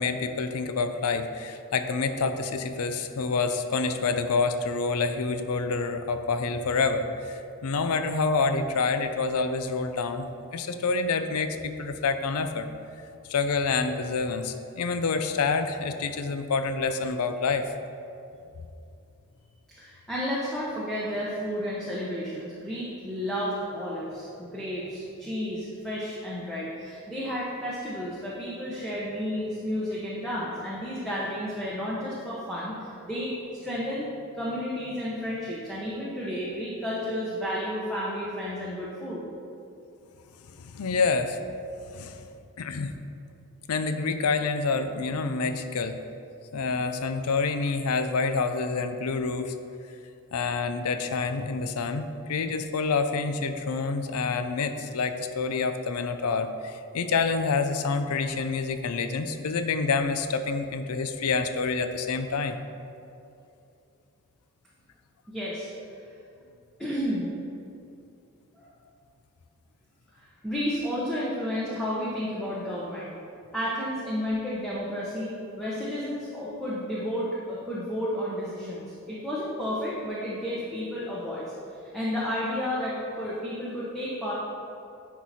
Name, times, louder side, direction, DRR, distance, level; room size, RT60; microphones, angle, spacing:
voice 1, 0.0-10.3 10.5-12.7 13.3-17.7 40.6-41.4 41.9-42.2 42.6-43.0 43.7-46.0 46.5-49.5 50.3-62.5, left 4 dB, 75° left, 9 dB, 0.5 m, -27 dB
voice 2, 19.8-33.3 33.6-39.2 65.3-65.7 66.8-67.3 68.6-68.7 70.2-73.1 73.5-81.5 81.9-84.3, equal, 5° left, -8 dB, 0.9 m, -32 dB
10.0 x 4.6 x 4.2 m, 2.6 s
head